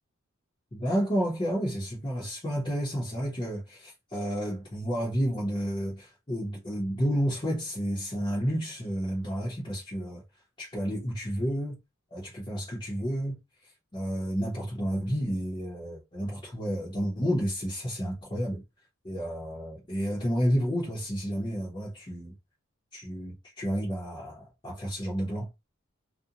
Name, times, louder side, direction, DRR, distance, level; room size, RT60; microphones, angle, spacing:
voice 1, 0.7-10.2 10.6-11.8 12.1-13.4 13.9-18.6 19.0-22.3 22.9-25.5, equal, 20° left, 0.7 m, -31 dB
2.5 x 2.1 x 2.7 m
head